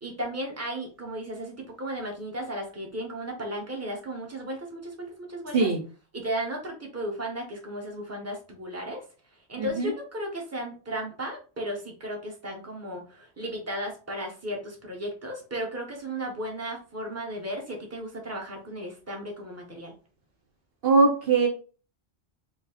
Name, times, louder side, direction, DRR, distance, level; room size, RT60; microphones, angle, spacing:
voice 1, 0.0-5.7 6.1-9.0 9.5-19.9, equal, 15° right, 0 dB, 1.1 m, -35 dB
voice 2, 9.6-9.9 20.8-21.5, right 3 dB, 60° right, 1 dB, 0.8 m, -21 dB
4.5 x 2.2 x 4.1 m, 0.37 s
omnidirectional pair, 1.2 m